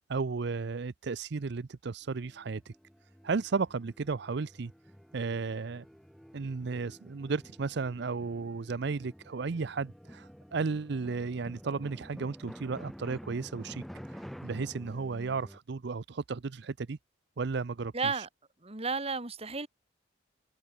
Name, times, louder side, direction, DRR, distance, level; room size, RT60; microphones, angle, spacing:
voice 1, 0.1-2.7 3.2-4.7 5.1-5.8 6.3-17.0 17.4-18.3, right 4 dB, 65° right, 0.6 m, -34 dB
sound 1, 2.0-15.6, equal, ahead, 4.9 m, -49 dB
voice 2, 17.9-18.3 18.6-19.7, right 4 dB, 35° right, 2.2 m, -32 dB
head